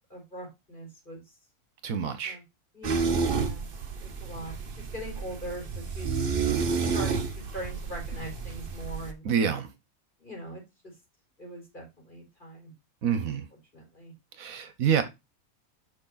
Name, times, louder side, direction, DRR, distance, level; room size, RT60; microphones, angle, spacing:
voice 1, 0.1-1.3 2.2-2.4 2.7-3.7 4.0-6.3 6.9-9.2 10.2-10.6 11.4-12.7 13.3-13.4 13.7-14.1, right 1 dB, 35° left, 4.7 m, -41 dB
voice 2, 1.8-2.4 9.2-9.7 13.0-13.5 14.4-15.0, right 7 dB, 75° right, 1.3 m, -27 dB
sound 1, 2.8-9.1, right 5 dB, 45° right, 1.0 m, -30 dB
6.5 x 5.8 x 3.9 m
omnidirectional pair, 1.5 m